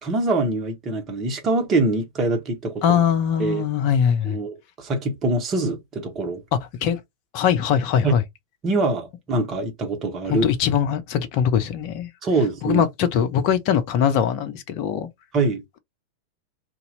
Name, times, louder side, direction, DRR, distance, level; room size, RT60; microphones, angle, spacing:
voice 1, 0.0-3.0 3.4-3.6 4.2-6.4 8.0-8.1 8.6-10.5 12.2-12.8 15.3-15.6, right 2 dB, 30° right, 1.4 m, -24 dB
voice 2, 2.8-4.4 6.5-7.0 7.3-8.2 10.3-12.1 12.6-15.1, left 8 dB, 45° left, 0.9 m, -21 dB
2.8 x 2.7 x 3.9 m
figure-of-eight pair, 90°, 0 cm